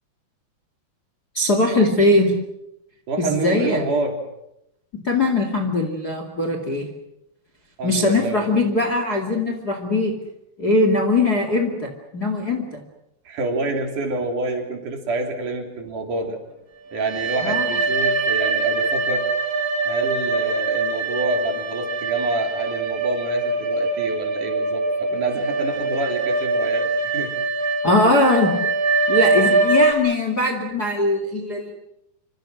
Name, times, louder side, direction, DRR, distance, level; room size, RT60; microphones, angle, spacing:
voice 1, 1.3-2.4 3.2-3.8 4.9-6.9 7.8-10.1 10.6-12.8 17.4-17.6 27.8-28.6 29.1-31.7, left 2 dB, 30° left, 5 dB, 2.1 m, -20 dB
voice 2, 3.1-4.2 7.8-8.6 13.3-16.4 16.9-19.3 19.8-27.8, right 2 dB, 50° right, 3 dB, 4.4 m, -28 dB
sound 1, 16.9-29.9, right 3 dB, 25° right, 3.1 m, -23 dB
27.5 x 25.0 x 6.3 m, 0.83 s
omnidirectional pair, 4.8 m